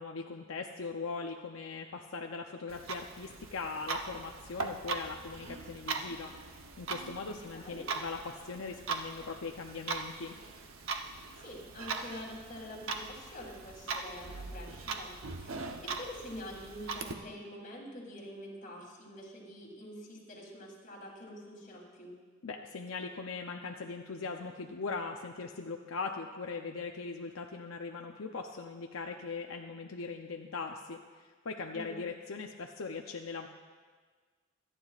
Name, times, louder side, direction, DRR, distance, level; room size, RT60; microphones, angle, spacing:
voice 1, 0.0-10.4 22.4-33.5, left 4 dB, 80° left, 3 dB, 0.6 m, -40 dB
Clock, 2.7-17.1, right 4 dB, 90° right, 0.9 m, -40 dB
voice 2, 7.5-7.8 11.0-22.2 31.7-32.0, left 1 dB, 40° left, -3 dB, 3.1 m, -46 dB
25.5 x 9.9 x 2.4 m, 1.5 s
head